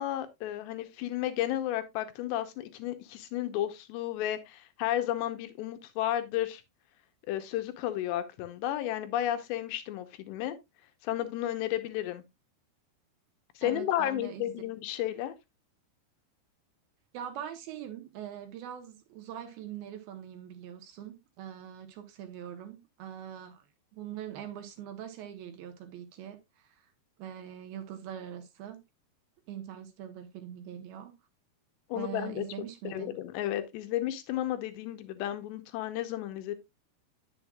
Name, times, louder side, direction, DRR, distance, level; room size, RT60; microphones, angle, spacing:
voice 1, 0.0-6.6 7.3-10.6 11.0-12.2 13.6-15.3 31.9-32.4 32.8-36.6, left 13 dB, 80° left, 3.0 m, -33 dB
voice 2, 13.6-14.5 17.1-23.6 23.9-26.8 27.2-28.8 29.5-31.1 31.9-33.1, right 10 dB, 70° right, 2.5 m, -42 dB
9.7 x 7.2 x 2.3 m
omnidirectional pair, 4.9 m